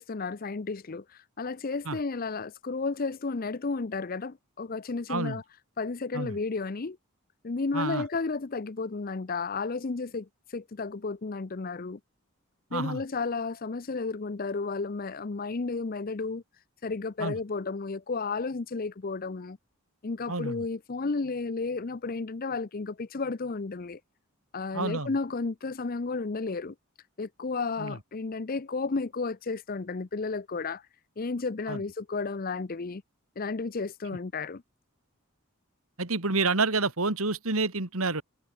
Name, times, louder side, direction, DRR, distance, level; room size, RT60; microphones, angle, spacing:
voice 1, 0.0-5.4 5.8-7.0 7.4-12.0 12.7-16.4 16.8-19.6 20.0-24.0 24.5-26.7 27.2-30.8 31.2-33.0 33.4-34.6, left 4 dB, 45° left, 0.6 m, -32 dB
voice 2, 5.1-5.4 6.1-6.3 7.7-8.1 12.7-13.0 17.2-17.4 20.3-20.7 24.7-25.1 27.8-28.0 31.7-31.8 36.0-38.2, right 3 dB, 80° right, 2.6 m, -29 dB
head